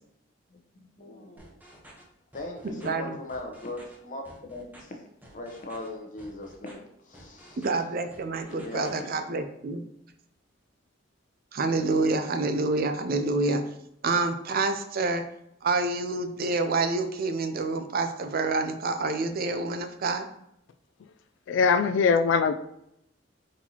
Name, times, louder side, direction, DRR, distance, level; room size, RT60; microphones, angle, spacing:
voice 1, 0.5-1.5 2.3-5.0 5.3-7.7 8.5-9.1, left 2 dB, 45° left, 2 dB, 0.8 m, -39 dB
sound 1, 1.4-2.0 2.3-2.9 3.3-4.0 4.2-4.8 5.2-5.9 6.2-6.7 7.1-7.8 8.1-9.0, equal, 10° right, 0.8 m, -51 dB
voice 2, 7.6-9.8 11.5-13.6 14.0-15.2 15.6-20.3, right 3 dB, 50° right, 8 dB, 0.5 m, -27 dB
voice 3, 21.5-22.5, left 5 dB, 70° left, 9 dB, 0.3 m, -21 dB
4.2 x 4.1 x 2.9 m, 0.78 s
head